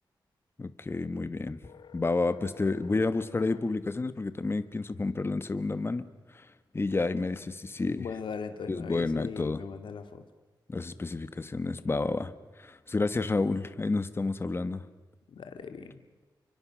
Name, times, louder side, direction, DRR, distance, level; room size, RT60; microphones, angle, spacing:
voice 1, 0.6-1.6 1.9-6.1 6.3-6.4 6.7-8.0 8.7-9.6 10.7-12.3 12.6-14.8, left 3 dB, 30° left, 13 dB, 1.4 m, -30 dB
sound 1, 1.6-3.7, left 7 dB, 65° left, 1.3 m, -52 dB
voice 2, 7.9-10.2 15.3-16.0, left 6 dB, 85° left, 8 dB, 2.4 m, -39 dB
30.0 x 24.0 x 6.4 m, 1.2 s
wide cardioid pair, 115°, 8 cm